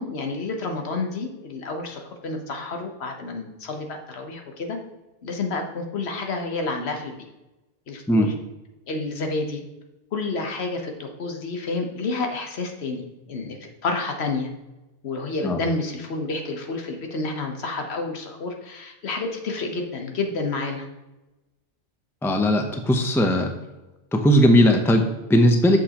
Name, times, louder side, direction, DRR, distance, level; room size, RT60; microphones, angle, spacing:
voice 1, 0.0-4.8 5.2-7.1 7.9-8.3 8.9-9.6 10.1-13.0 13.3-14.5 15.0-20.9, left 3 dB, 75° left, 4 dB, 1.3 m, -29 dB
voice 2, 22.2-23.5 24.1-25.8, equal, 5° left, 5 dB, 0.6 m, -18 dB
7.7 x 6.4 x 2.9 m, 1.0 s
omnidirectional pair, 1.1 m